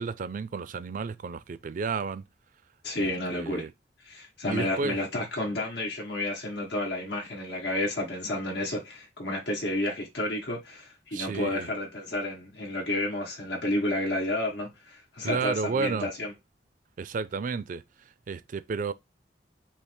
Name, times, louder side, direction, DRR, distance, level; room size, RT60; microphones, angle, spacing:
voice 1, 0.0-2.2 3.0-3.7 4.5-5.0 11.1-11.7 15.2-16.1 17.0-17.8 18.3-18.9, right 5 dB, 45° right, 0.4 m, -32 dB
voice 2, 2.8-3.6 4.0-16.3, left 1 dB, 80° left, 1.3 m, -31 dB
5.6 x 2.0 x 4.3 m
head